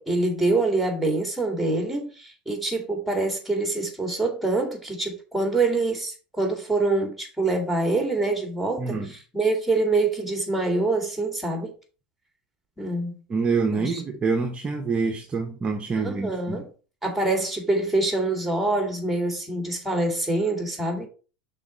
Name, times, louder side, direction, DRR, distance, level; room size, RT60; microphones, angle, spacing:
voice 1, 0.0-11.7 12.8-13.2 13.7-14.0 16.0-16.7 17.0-21.1, right 2 dB, ahead, 2.2 m, -25 dB
voice 2, 8.8-9.1 13.3-16.6, right 4 dB, 25° right, 0.9 m, -26 dB
6.1 x 4.0 x 4.4 m
supercardioid pair, 105°, 4 cm